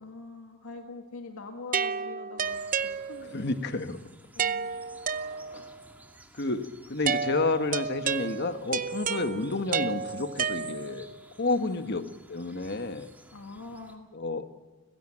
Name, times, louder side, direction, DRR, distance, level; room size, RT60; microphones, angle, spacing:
voice 1, 0.0-3.5 4.3-4.7 11.4-12.1 13.3-14.1, left 3 dB, 80° left, 4 dB, 1.8 m, -43 dB
sound 1, 1.7-3.5 4.4-5.8 7.0-11.2, right 6 dB, 40° right, 0.7 m, -31 dB
sound 2, 2.4-14.0, right 2 dB, 10° right, 2.1 m, -52 dB
voice 2, 3.3-4.0 5.5-5.6 6.3-11.1 11.4-12.0 12.3-13.1 14.1-14.5, left 3 dB, 50° left, 9 dB, 1.5 m, -30 dB
29.5 x 16.0 x 8.9 m, 1.2 s
head